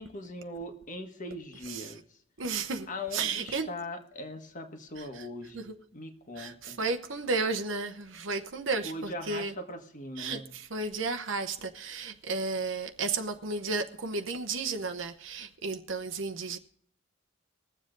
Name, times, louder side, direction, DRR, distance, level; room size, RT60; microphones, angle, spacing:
voice 1, 0.0-2.2 2.9-6.8 8.8-10.6, left 1 dB, 40° left, 1.4 m, -40 dB
voice 2, 2.4-2.9 3.1-3.7 6.4-8.9 9.3-9.5 10.2-16.6, right 4 dB, 80° right, 0.9 m, -33 dB
21.0 x 7.5 x 3.9 m
head